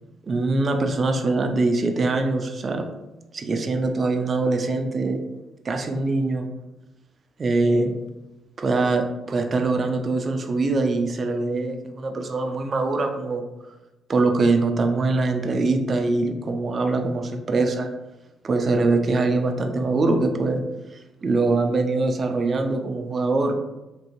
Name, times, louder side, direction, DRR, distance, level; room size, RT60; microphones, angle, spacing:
voice 1, 0.3-2.8 3.3-5.2 5.6-6.5 7.4-7.9 8.6-13.4 14.1-17.9 18.4-20.6 20.9-23.6, right 3 dB, 40° right, 5 dB, 0.4 m, -23 dB
2.9 x 2.7 x 2.9 m, 1.0 s
cardioid pair, 90°, 0 cm